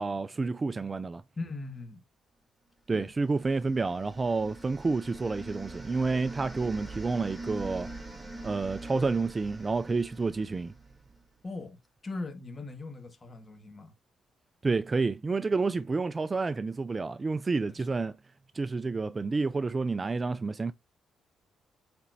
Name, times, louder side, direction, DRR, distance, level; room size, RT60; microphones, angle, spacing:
voice 1, 0.0-1.2 2.9-7.9 8.4-10.7 14.6-18.2 18.5-20.7, right 3 dB, 25° right, 0.3 m, -29 dB
voice 2, 1.4-2.0 2.9-3.1 11.4-13.9 17.6-17.8, left 3 dB, 30° left, 1.5 m, -40 dB
sound 1, 3.2-11.2, right 2 dB, 10° right, 1.9 m, -44 dB
8.6 x 4.2 x 2.6 m
cardioid pair, 90°, 0 cm